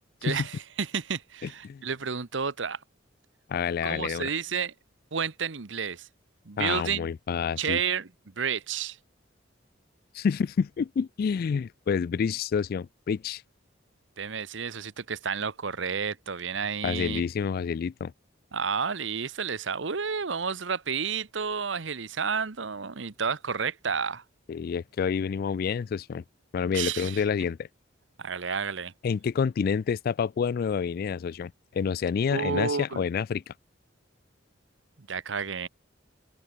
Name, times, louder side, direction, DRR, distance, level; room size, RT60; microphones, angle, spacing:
voice 1, 0.2-2.8 3.8-4.7 5.1-6.1 6.5-7.1 7.6-8.1 8.4-9.0 14.2-17.2 18.5-24.2 26.7-27.2 28.2-28.9 32.3-33.0 35.0-35.7, right 6 dB, 75° right, 1.0 m, -31 dB
voice 2, 3.5-4.3 6.6-7.8 10.1-13.4 16.8-18.1 24.5-26.2 26.5-27.7 29.0-33.5, left 6 dB, 50° left, 0.3 m, -28 dB
open air
head